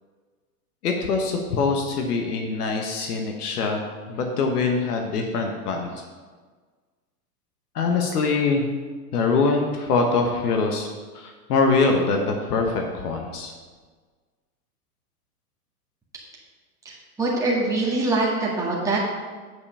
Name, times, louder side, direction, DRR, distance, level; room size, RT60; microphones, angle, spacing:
voice 1, 0.8-3.8 4.1-5.9 7.7-8.6 9.1-13.5, left 4 dB, 75° left, 2 dB, 1.4 m, -23 dB
voice 2, 16.9-19.0, right 2 dB, 5° right, -5 dB, 1.8 m, -24 dB
7.9 x 5.7 x 5.5 m, 1.5 s
hypercardioid pair, 125°, 46 cm